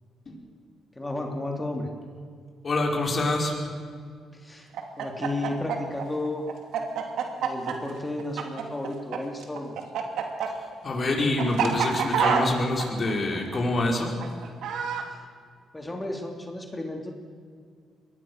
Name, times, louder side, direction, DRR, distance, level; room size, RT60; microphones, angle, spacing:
voice 1, 0.9-1.9 4.3-4.7 5.0-6.4 7.4-9.8 15.1-15.2 15.7-17.1, left 2 dB, 15° left, 2 dB, 3.1 m, -33 dB
voice 2, 2.6-3.5 10.8-14.1, left 2 dB, 40° left, 0 dB, 5.3 m, -26 dB
Chicken rooster, 4.7-9.2 9.4-15.1, right 7 dB, 75° right, 2.7 m, -27 dB
23.0 x 18.5 x 6.6 m, 2.1 s
cardioid pair, 90°, 0 cm